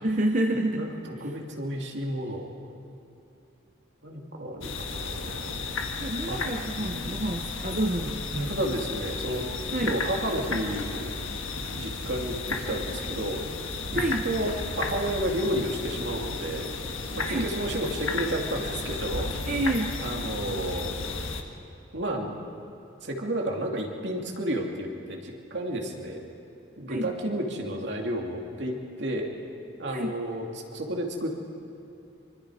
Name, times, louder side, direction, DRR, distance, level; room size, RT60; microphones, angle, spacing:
voice 1, 0.0-0.9 6.0-8.5 9.7-9.9 13.9-14.3 17.2-17.5 19.5-20.0 26.9-27.1 29.9-30.1, right 1 dB, 40° right, 3 dB, 0.9 m, -28 dB
voice 2, 0.7-2.5 4.0-5.8 6.3-6.4 8.5-9.5 9.9-11.2 11.7-13.4 13.9-16.7 17.1-19.3 20.0-20.9 21.9-22.4 23.0-26.2 26.8-29.3 29.8-30.5 30.7-31.5, right 1 dB, 60° right, 0 dB, 2.6 m, -31 dB
sound 1, 4.6-21.4, left 3 dB, 90° left, 1.6 m, -33 dB
25.0 x 25.0 x 5.0 m, 2.7 s
head